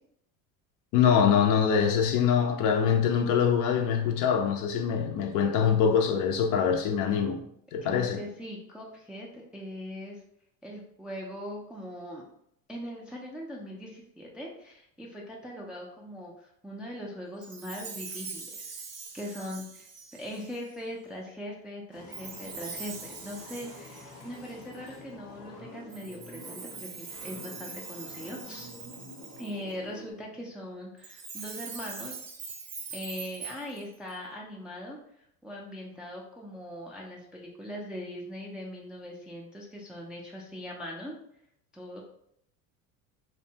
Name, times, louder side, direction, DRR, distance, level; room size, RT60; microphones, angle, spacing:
voice 1, 0.9-7.4 7.7-8.2, left 7 dB, 55° left, 0.5 m, -24 dB
voice 2, 7.8-10.2 10.6-12.3 12.7-18.7 19.1-28.7 29.4-32.2 32.9-41.1 41.7-42.0, equal, ahead, 0.3 m, -41 dB
Chime, 17.4-20.8 22.1-25.0 25.9-29.7 31.0-34.1, right 5 dB, 40° right, 0.6 m, -43 dB
sound 1, 21.9-30.1, left 2 dB, 80° left, 0.9 m, -48 dB
2.6 x 2.2 x 2.7 m
hypercardioid pair, 80°, 41 cm